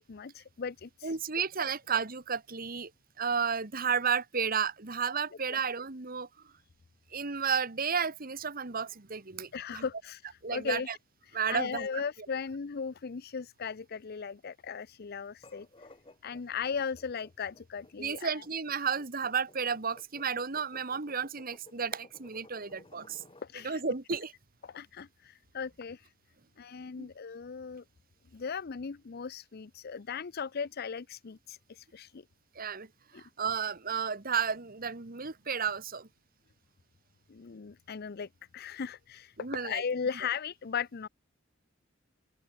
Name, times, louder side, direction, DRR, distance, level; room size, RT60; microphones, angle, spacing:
voice 1, 0.0-1.2 5.5-5.6 9.5-11.0 11.3-15.9 16.2-18.4 23.4-23.8 24.6-26.1 26.6-27.8 28.3-32.2 33.1-33.2 37.3-41.1, left 6 dB, 55° left, 0.5 m, -37 dB
voice 2, 1.0-2.9 3.2-6.3 7.1-9.8 10.4-10.9 11.3-12.0 18.0-23.2 23.6-24.3 27.0-27.1 32.5-32.9 33.1-36.1 39.4-39.8, right 6 dB, 50° right, 1.6 m, -32 dB
sound 1, 15.3-23.5, left 2 dB, 25° left, 2.6 m, -57 dB
open air
head